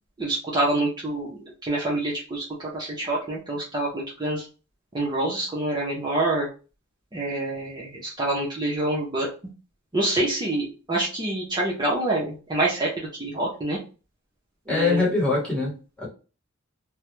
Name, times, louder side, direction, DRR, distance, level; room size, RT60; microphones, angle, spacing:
voice 1, 0.2-4.5 4.9-6.5 7.1-9.3 9.9-13.8 14.7-15.1, right 2 dB, 20° right, 0.5 m, -26 dB
voice 2, 14.7-16.1, left 3 dB, 5° left, 1.0 m, -23 dB
2.3 x 2.0 x 3.0 m
head